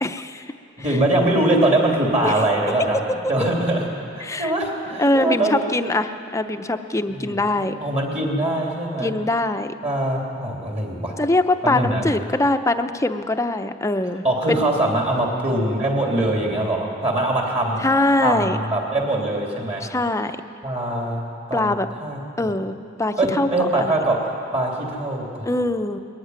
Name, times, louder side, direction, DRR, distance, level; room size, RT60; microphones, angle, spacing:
voice 1, 0.0-0.5 0.9-1.0 2.2-2.4 4.2-4.5 5.0-7.8 9.0-9.7 11.2-14.6 17.8-18.6 19.8-20.4 21.5-21.9 22.4-23.5 23.8-23.9 25.4-26.0, left 2 dB, 15° left, 8 dB, 0.7 m, -22 dB
voice 2, 0.8-3.0 3.3-3.9 4.1-5.6 7.1-9.1 9.8-11.1 11.6-12.1 14.2-17.8 18.2-19.9 20.6-21.7 22.0-22.5 23.2-24.2 24.5-25.5, right 1 dB, 35° right, -1 dB, 3.2 m, -22 dB
20.5 x 14.0 x 9.6 m, 2.5 s
head